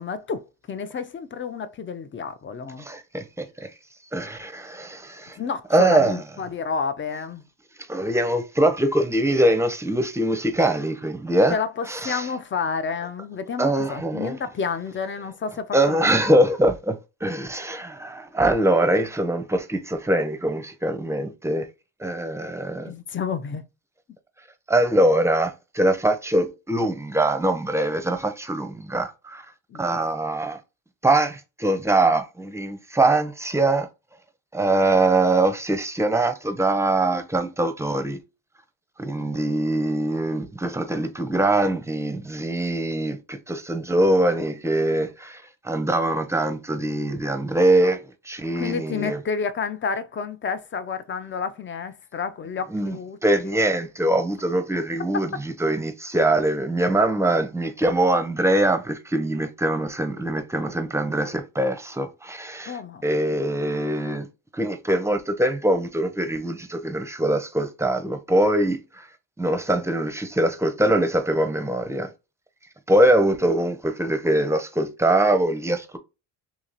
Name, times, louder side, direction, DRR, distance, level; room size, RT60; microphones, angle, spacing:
voice 1, 0.0-2.9 5.4-7.4 11.5-16.0 22.9-23.7 29.7-29.8 48.6-53.2 53.4-53.6 62.7-63.0, left 5 dB, 30° left, 0.6 m, -30 dB
voice 2, 2.8-3.7 4.1-5.4 5.7-6.2 7.9-11.6 11.9-12.3 13.6-14.4 15.7-21.7 22.0-22.9 24.7-29.4 29.8-30.6 31.0-33.9 34.5-38.2 39.0-49.2 52.7-64.3 64.5-69.1 69.4-72.1 72.9-76.0, right 1 dB, 5° right, 0.7 m, -23 dB
2.9 x 2.9 x 4.0 m
supercardioid pair, 75°, 43 cm